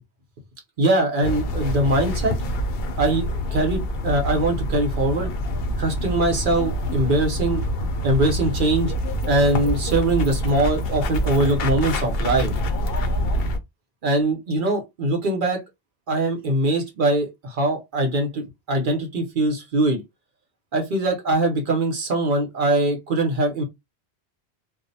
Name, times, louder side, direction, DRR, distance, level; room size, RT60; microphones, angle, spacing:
voice 1, 0.8-2.4 3.0-5.3 5.8-7.6 8.0-8.9 9.3-12.5 14.0-15.6 16.1-20.0 20.7-23.6, right 2 dB, 55° right, 0.8 m, -22 dB
sound 1, 1.2-13.6, equal, 65° left, 0.7 m, -26 dB
2.4 x 2.0 x 2.6 m
omnidirectional pair, 1.1 m